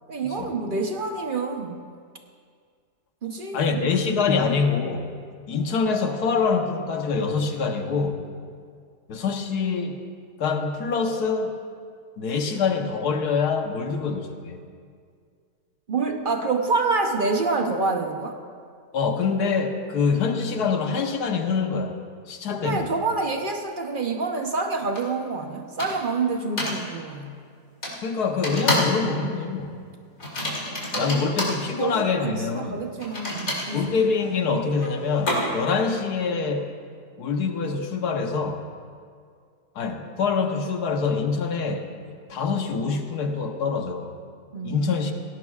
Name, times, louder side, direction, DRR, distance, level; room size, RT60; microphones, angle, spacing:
voice 1, 0.1-1.9 3.2-3.8 15.9-18.4 22.5-27.3 30.9-31.1 31.7-33.9 44.5-44.9, right 4 dB, 45° right, 4 dB, 0.7 m, -27 dB
voice 2, 3.5-5.1 5.5-8.2 9.1-10.0 10.4-11.5 12.2-14.6 18.9-22.0 22.3-22.9 28.0-29.8 30.9-32.8 33.7-36.7 37.2-38.7 39.7-44.1 44.6-45.1, left 5 dB, 70° left, 5 dB, 1.5 m, -25 dB
sound 1, 24.9-25.0 25.8-26.1 26.6-26.8 27.8-28.0 28.4-29.0 29.3-29.5 30.2-31.6 33.0-35.7, left 1 dB, 55° left, 3.4 m, -28 dB
19.0 x 17.0 x 2.4 m, 2.1 s
omnidirectional pair, 1.8 m